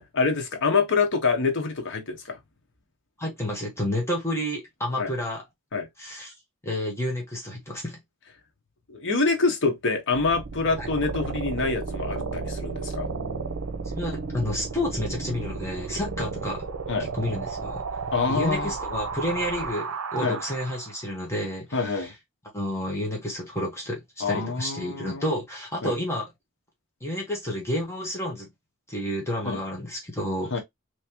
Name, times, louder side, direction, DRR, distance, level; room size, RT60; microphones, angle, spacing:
voice 1, 0.1-2.4 5.0-5.1 5.7-5.9 8.9-13.1 16.9-17.1 18.1-18.7 20.2-20.4 21.7-22.1 24.2-25.4 25.8-26.0 29.4-29.6 30.5-30.6, left 4 dB, 60° left, 1.2 m, -26 dB
voice 2, 3.2-5.4 6.0-6.3 6.6-8.0 10.8-10.9 13.8-16.7 17.0-17.8 18.3-22.1 22.5-26.3 27.0-28.5 28.9-30.6, left 1 dB, 15° left, 1.3 m, -30 dB
sound 1, 10.1-21.1, right 4 dB, 75° right, 0.7 m, -33 dB
3.5 x 3.1 x 2.9 m
head